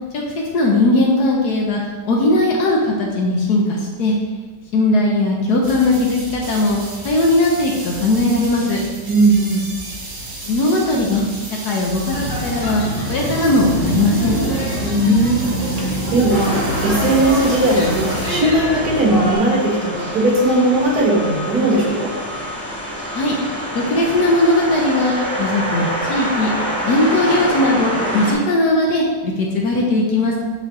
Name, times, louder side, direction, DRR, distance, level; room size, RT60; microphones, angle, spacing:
voice 1, 0.5-4.2 4.7-6.8 7.0-8.8 10.4-11.2 11.6-12.8 13.1-14.4 23.1-23.3 23.7-25.1 25.4-26.5 26.8-30.4, left 2 dB, 65° left, -2 dB, 1.3 m, -18 dB
sound 1, 5.6-18.4, right 2 dB, 40° right, 0.7 m, -33 dB
voice 2, 9.1-9.7 14.8-15.5 15.8-22.1, right 1 dB, 60° right, -3 dB, 1.9 m, -18 dB
sound 2, 12.1-19.3, equal, 20° left, 1.5 m, -24 dB
sound 3, 16.3-28.3, equal, 25° right, 1.3 m, -26 dB
9.7 x 3.6 x 3.1 m, 1.3 s
omnidirectional pair, 1.9 m